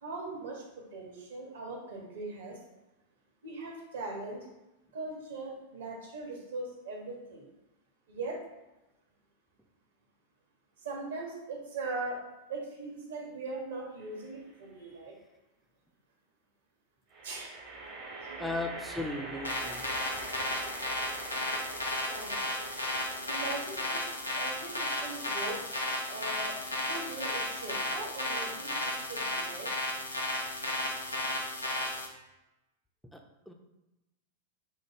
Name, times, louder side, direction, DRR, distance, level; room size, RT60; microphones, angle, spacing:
voice 1, 0.0-0.6 0.9-2.6 3.4-4.4 4.9-7.4 8.1-8.4 10.8-12.2 12.5-15.1 17.2-17.5 17.9-18.0 18.3-18.5 22.0-22.3 23.3-24.0 24.4-25.6 26.1-29.7, right 3 dB, 60° right, -1 dB, 1.0 m, -40 dB
sound 1, 14.0-14.6 17.1-28.5, right 3 dB, 40° right, 0.8 m, -46 dB
voice 2, 18.4-20.1 33.1-33.5, left 2 dB, ahead, 3 dB, 0.4 m, -37 dB
sound 2, 19.4-32.1, left 1 dB, 85° left, 0.5 m, -34 dB
4.5 x 2.2 x 3.2 m, 0.96 s
figure-of-eight pair, 90°, 0 cm